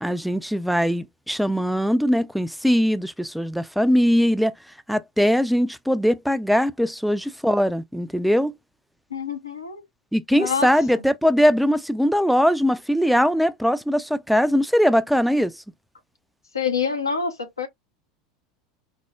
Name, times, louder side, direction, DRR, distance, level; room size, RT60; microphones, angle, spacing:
voice 1, 0.0-4.5 4.9-8.5 10.1-15.5, equal, ahead, 0.3 m, -21 dB
voice 2, 9.1-9.8 10.3-10.7 16.5-17.7, left 6 dB, 85° left, 0.6 m, -26 dB
4.3 x 2.0 x 2.3 m
figure-of-eight pair, 75°, 2 cm